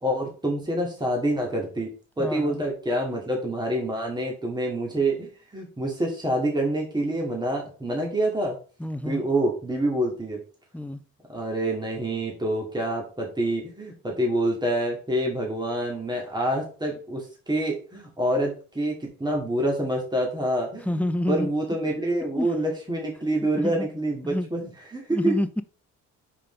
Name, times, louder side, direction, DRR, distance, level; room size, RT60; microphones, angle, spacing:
voice 1, 0.0-1.9 2.2-8.6 9.0-10.4 11.3-25.3, right 1 dB, 15° right, 2.3 m, -27 dB
voice 2, 2.2-2.6 8.8-9.2 10.7-11.0 20.8-21.5 22.4-22.5 23.6-23.9 24.2-24.5 25.1-25.6, left 1 dB, 5° left, 0.5 m, -28 dB
5.9 x 5.0 x 3.3 m
cardioid pair, 90°, 30 cm